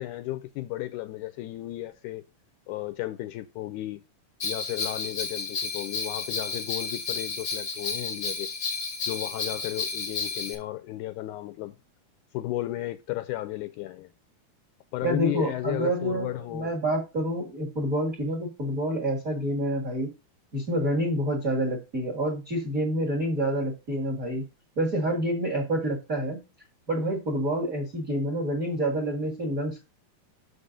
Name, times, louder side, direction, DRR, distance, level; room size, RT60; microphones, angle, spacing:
voice 1, 0.0-2.2 2.7-4.0 4.4-8.5 9.0-11.7 12.3-14.1 14.9-16.7, left 16 dB, 80° left, 1.8 m, -34 dB
Bell, 4.4-10.5, left 4 dB, 65° left, 0.7 m, -32 dB
voice 2, 15.0-20.1 20.5-24.4 24.7-26.4 26.9-29.8, right 1 dB, 40° right, 1.3 m, -28 dB
6.5 x 5.4 x 5.0 m
omnidirectional pair, 3.8 m